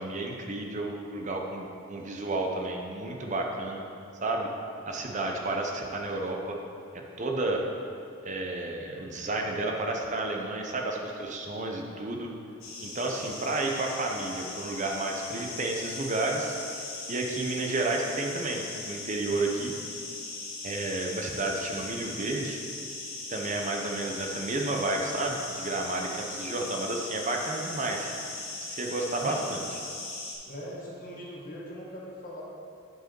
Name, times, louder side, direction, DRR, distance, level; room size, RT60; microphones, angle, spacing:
voice 1, 0.0-3.8 4.2-4.5 4.9-6.6 6.9-7.6 8.2-12.3 12.8-16.6 17.1-19.7 20.6-22.6 23.3-28.2 28.7-29.6, right 2 dB, 35° right, 1 dB, 0.7 m, -31 dB
sound 1, 12.6-30.4, left 3 dB, 75° left, 1.7 m, -39 dB
voice 2, 30.5-32.4, equal, 40° left, -4 dB, 1.5 m, -40 dB
9.6 x 4.7 x 4.5 m, 2.4 s
head